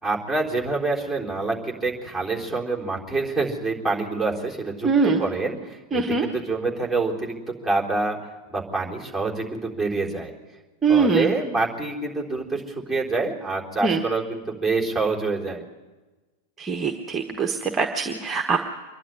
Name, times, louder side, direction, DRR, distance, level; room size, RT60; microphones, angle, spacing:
voice 1, 0.0-7.4 7.6-10.3 10.9-15.6, right 3 dB, 5° left, -4 dB, 3.8 m, -26 dB
voice 2, 4.8-5.2 5.9-6.3 10.8-11.3 13.8-14.0 16.6-18.6, right 4 dB, 20° right, 3 dB, 1.3 m, -22 dB
26.0 x 11.0 x 9.9 m, 1.2 s
figure-of-eight pair, 90°, 0 cm